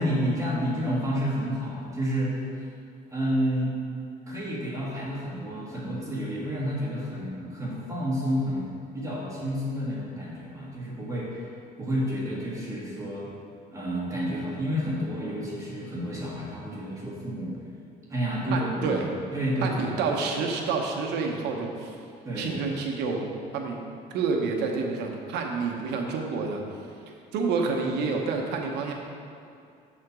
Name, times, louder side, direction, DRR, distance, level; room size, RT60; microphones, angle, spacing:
voice 1, 0.0-2.4 3.1-3.8 4.3-11.5 11.8-13.3 13.7-17.5 18.1-19.0 19.3-20.0 22.2-22.7, equal, 20° right, -6 dB, 2.0 m, -30 dB
voice 2, 18.5-19.1 19.6-21.9 22.4-23.2 23.5-23.8 24.1-26.6 27.3-28.9, right 4 dB, 85° right, 1 dB, 1.0 m, -28 dB
7.7 x 4.3 x 6.0 m, 2.5 s
cardioid pair, 110°, 17 cm